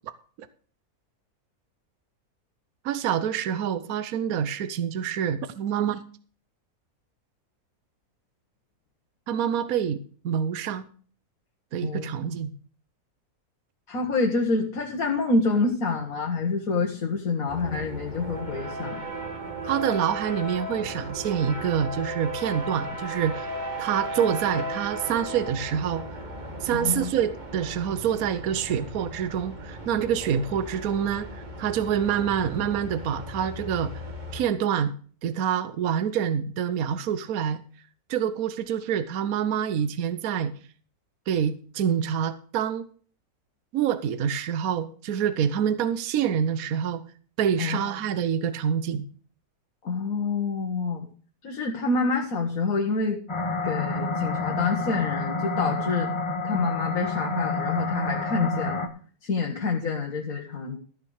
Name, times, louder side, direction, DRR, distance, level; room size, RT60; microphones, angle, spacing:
voice 1, 2.8-6.0 9.3-10.0 10.2-10.9 11.7-12.5 19.6-23.5 23.8-26.0 26.6-33.9 34.3-34.9 35.2-37.6 38.1-40.5 41.3-42.8 43.7-47.0 47.4-49.1, right 8 dB, 75° right, 13 dB, 1.3 m, -26 dB
voice 2, 13.9-19.0 26.7-27.1 47.6-47.8 49.8-51.0 51.4-53.2 53.6-56.1 56.4-58.9 59.2-60.8, left 3 dB, 65° left, 1 dB, 2.0 m, -27 dB
sound 1, 17.5-34.4, right 1 dB, 30° right, 1.9 m, -36 dB
sound 2, 53.3-58.9, left 2 dB, 20° left, 1.0 m, -29 dB
14.0 x 6.3 x 6.5 m, 0.42 s
omnidirectional pair, 1.6 m